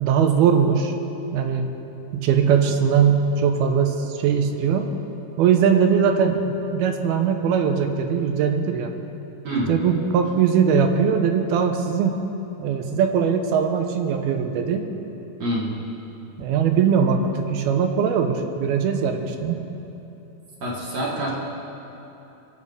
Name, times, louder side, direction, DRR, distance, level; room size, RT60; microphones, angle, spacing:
voice 1, 0.0-0.9 1.3-1.7 2.1-4.9 5.4-8.9 9.7-12.2 12.6-14.9 16.4-19.6, right 7 dB, 75° right, 6 dB, 2.6 m, -20 dB
voice 2, 15.4-15.7 20.6-21.3, right 1 dB, 50° right, -4 dB, 2.5 m, -26 dB
23.5 x 8.0 x 5.4 m, 3.0 s
omnidirectional pair, 4.7 m